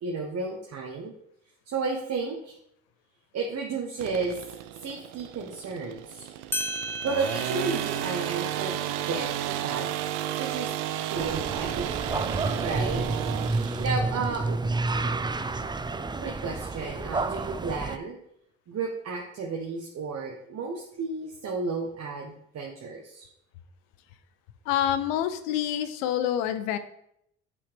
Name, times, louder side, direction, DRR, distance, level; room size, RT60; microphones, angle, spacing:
voice 1, 0.0-1.1 1.7-2.6 3.3-4.4 4.8-6.3 7.0-8.8 9.0-9.9 10.4-10.7 11.1-11.9 12.2-13.1 13.5-14.6 16.2-18.2 18.7-23.3, right 4 dB, 50° right, 1 dB, 1.2 m, -33 dB
sound 1, 4.0-14.0, right 12 dB, 70° right, 0.6 m, -33 dB
sound 2, 6.2-6.3 6.5-11.6, equal, 5° left, 1.0 m, -38 dB
sound 3, 11.2-18.0, right 3 dB, 15° right, 0.5 m, -30 dB
voice 2, 24.7-26.8, left 10 dB, 75° left, 11 dB, 0.7 m, -27 dB
8.4 x 5.7 x 3.4 m, 0.75 s
hypercardioid pair, 50°, 33 cm